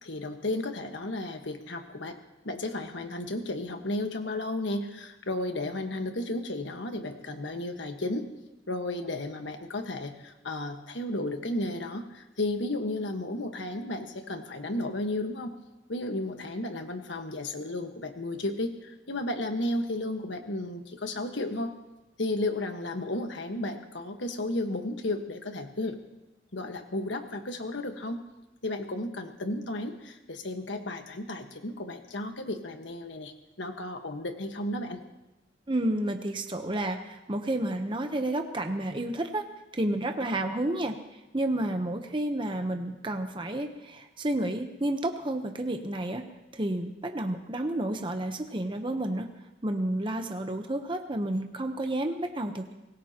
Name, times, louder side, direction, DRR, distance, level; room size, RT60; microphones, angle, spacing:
voice 1, 0.0-2.2 2.4-8.3 8.7-15.5 15.9-21.7 22.2-26.0 26.5-28.2 28.6-35.0, left 2 dB, 75° left, 6 dB, 1.4 m, -33 dB
voice 2, 35.7-39.4 39.7-41.0 41.3-46.2 46.5-49.3 49.6-52.7, right 1 dB, 25° right, 5 dB, 0.9 m, -30 dB
24.5 x 18.5 x 2.9 m, 1.0 s
head